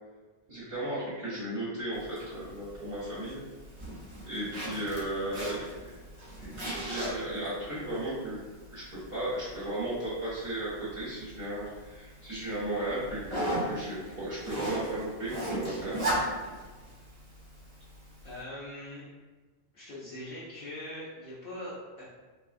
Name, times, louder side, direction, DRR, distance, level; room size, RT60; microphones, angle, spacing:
voice 1, 0.5-3.4 4.3-5.6 6.4-8.4 8.7-16.0, right 1 dB, 55° right, -11 dB, 1.1 m, -35 dB
Zipper (clothing), 1.9-18.4, right 1 dB, 35° right, 1.1 m, -38 dB
voice 2, 18.2-19.1 19.7-22.0, left 1 dB, 65° left, -9 dB, 0.9 m, -41 dB
3.4 x 2.7 x 2.4 m, 1.3 s
omnidirectional pair, 1.1 m